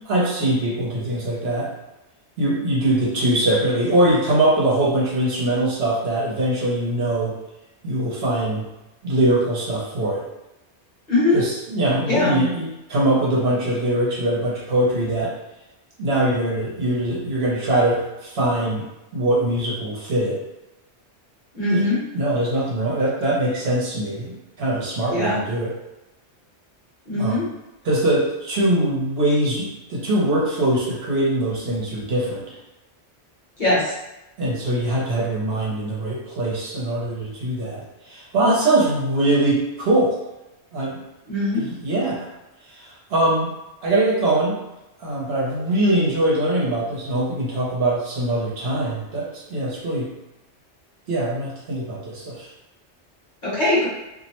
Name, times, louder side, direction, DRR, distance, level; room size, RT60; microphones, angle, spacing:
voice 1, 0.1-1.7 2.4-7.3 7.8-8.6 9.0-10.2 11.3-15.3 16.0-18.8 19.1-20.4 21.7-21.8 22.1-25.7 27.2-27.4 27.8-32.5 34.4-40.1 40.7-41.0 41.5-42.3 42.7-43.5 43.8-44.6 45.0-50.1 51.1-52.5, right 1 dB, 65° right, -5 dB, 0.9 m, -22 dB
voice 2, 11.1-11.4 12.1-12.4 21.5-22.0 25.1-25.4 27.1-27.5 33.6-33.9 41.3-41.6 53.4-53.9, left 2 dB, 45° left, -8 dB, 1.0 m, -21 dB
2.5 x 2.0 x 2.9 m, 0.96 s
omnidirectional pair, 1.2 m